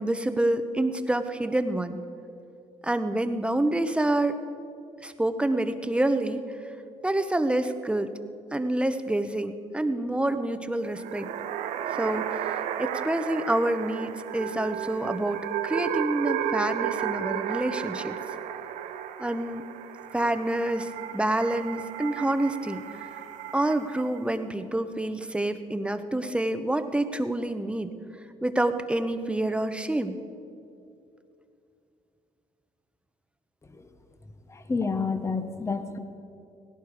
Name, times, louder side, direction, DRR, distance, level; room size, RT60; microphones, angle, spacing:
voice 1, 0.0-2.0 2.8-4.4 5.0-6.5 7.0-8.1 8.5-11.3 11.9-18.2 19.2-19.7 20.1-23.1 23.5-27.9 28.4-30.2, right 1 dB, 10° right, 9 dB, 0.9 m, -27 dB
sound 1, 10.8-24.2, right 10 dB, 80° right, 0.8 m, -33 dB
voice 2, 34.5-36.0, left 4 dB, 25° left, 9 dB, 1.0 m, -29 dB
17.5 x 16.5 x 4.9 m, 2.6 s
cardioid pair, 80°, 12 cm